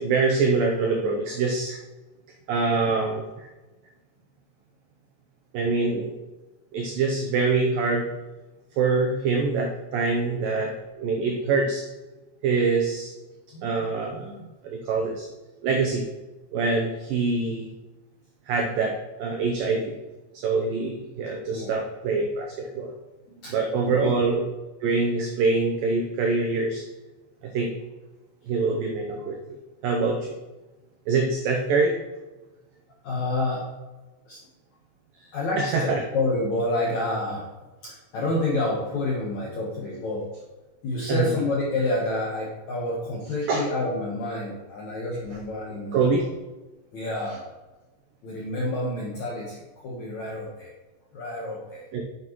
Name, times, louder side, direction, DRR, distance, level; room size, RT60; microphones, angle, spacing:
voice 1, 0.0-1.8 2.5-3.5 5.5-6.2 6.7-8.1 8.8-11.8 12.4-13.1 13.6-14.3 14.6-15.3 15.6-16.1 16.5-17.7 18.5-19.9 20.3-22.9 23.5-24.4 24.8-26.8 27.4-27.7 28.5-29.6 29.8-30.4 31.1-32.0 35.6-36.0 41.1-41.3 43.5-43.7 45.9-46.3 51.9-52.0, right 4 dB, 85° right, 1 dB, 1.9 m, -24 dB
voice 2, 13.5-13.9 14.1-14.5 21.5-21.7 23.3-23.5 23.9-24.1 33.0-33.7 34.3-34.4 35.3-37.5 37.8-40.3 40.8-46.1 46.9-47.4 48.2-50.7 51.1-51.8, left 2 dB, 70° left, -4 dB, 1.7 m, -29 dB
9.2 x 7.7 x 3.1 m, 1.1 s
omnidirectional pair, 5.1 m